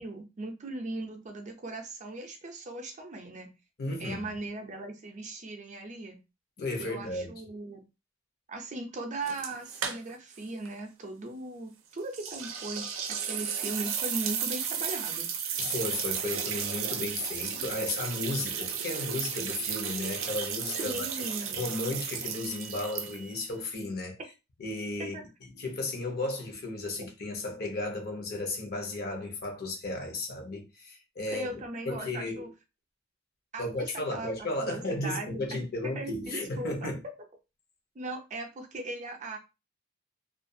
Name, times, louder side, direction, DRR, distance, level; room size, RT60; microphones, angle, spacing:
voice 1, 0.0-3.5 4.0-6.2 6.8-7.8 8.5-15.3 20.7-21.7 25.0-25.2 31.3-32.5 33.5-33.9 34.1-35.5 35.8-36.9 37.9-39.4, right 2 dB, 40° right, 0.5 m, -38 dB
voice 2, 3.8-4.3 6.6-7.3 15.6-21.1 21.5-24.2 24.6-25.2 25.5-32.5 33.6-37.0, left 2 dB, 50° left, 0.7 m, -34 dB
sound 1, 9.3-10.4 10.6-10.7 12.1-23.4, right 7 dB, 85° right, 0.5 m, -34 dB
2.4 x 2.3 x 2.6 m
head